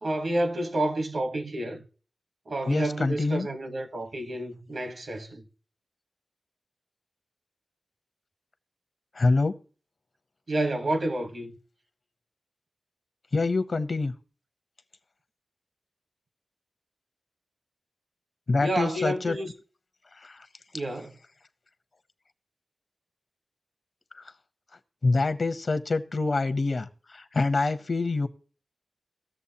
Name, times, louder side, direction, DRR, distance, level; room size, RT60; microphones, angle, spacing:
voice 1, 0.0-1.8 2.5-5.4 10.5-11.5 18.6-19.5 20.7-21.1, right 1 dB, 65° right, 1.1 m, -29 dB
voice 2, 2.7-3.5 9.1-9.5 13.3-14.1 18.5-19.4 20.2-20.5 24.1-24.2 25.0-28.3, left 3 dB, 60° left, 0.7 m, -26 dB
17.5 x 6.8 x 2.8 m
wide cardioid pair, 80°, 0 cm